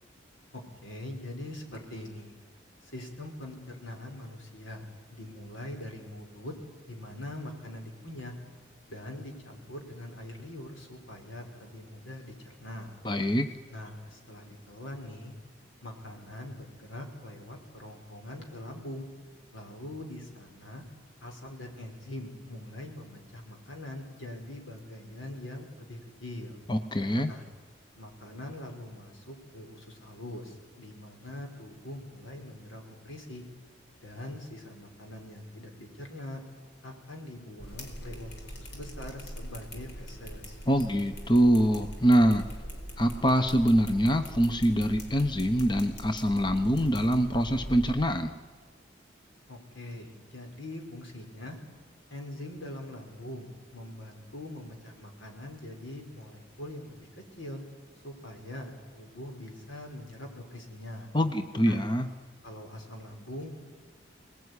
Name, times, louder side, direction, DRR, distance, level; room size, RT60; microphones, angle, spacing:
voice 1, 0.5-2.3 2.8-6.5 6.9-8.3 8.9-12.9 13.7-15.3 15.8-19.1 19.5-20.8 21.2-26.6 27.3-27.4 28.0-33.4 34.0-36.4 36.8-40.6 49.5-51.6 52.1-57.1 57.4-57.6 58.0-61.1 61.6-61.8 62.4-63.5, left 1 dB, 85° left, 3 dB, 5.3 m, -43 dB
voice 2, 13.0-13.5 26.7-27.3 40.7-42.4 43.0-48.3 61.1-62.1, equal, 25° left, 8 dB, 1.0 m, -24 dB
sound 1, 37.6-47.9, equal, 60° left, 4.8 m, -42 dB
25.0 x 20.0 x 9.8 m, 1.5 s
head